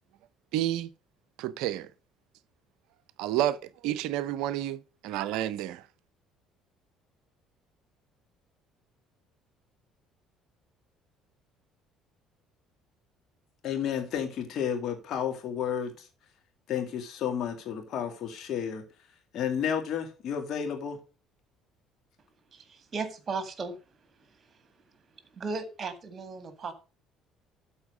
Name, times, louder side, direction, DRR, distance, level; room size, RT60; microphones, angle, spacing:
voice 1, 0.5-0.9 1.4-1.9 3.2-5.8, right 13 dB, 65° right, 0.4 m, -30 dB
voice 2, 13.6-16.1 16.7-18.8 19.3-21.0, left 8 dB, 55° left, 2.1 m, -31 dB
voice 3, 22.5-23.8 24.3-24.7 25.3-26.7, right 4 dB, 35° right, 1.8 m, -36 dB
12.5 x 4.3 x 5.1 m
hypercardioid pair, 55°, 0 cm